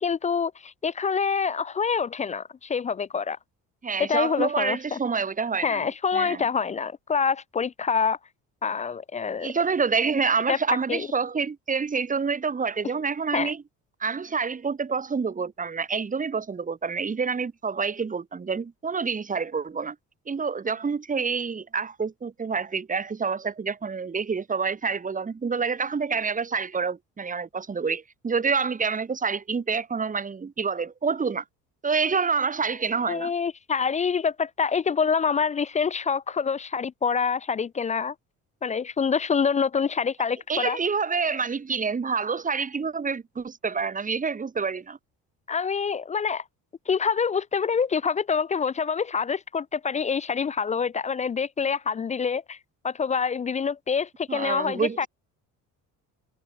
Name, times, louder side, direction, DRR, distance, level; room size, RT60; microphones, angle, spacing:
voice 1, 0.0-3.4 4.0-5.0 5.6-8.2 8.6-9.5 10.5-10.6 10.9-11.1 13.3-13.5 33.1-38.1 38.6-40.8 45.5-46.4 46.9-52.6 52.8-55.1, left 6 dB, 25° left, 0.4 m, -26 dB
voice 2, 3.8-5.9 6.1-6.4 9.4-13.6 14.0-20.0 20.3-31.4 31.8-33.3 40.5-45.0 54.3-55.1, right 5 dB, 25° right, 2.5 m, -27 dB
cardioid pair, 120°, 31 cm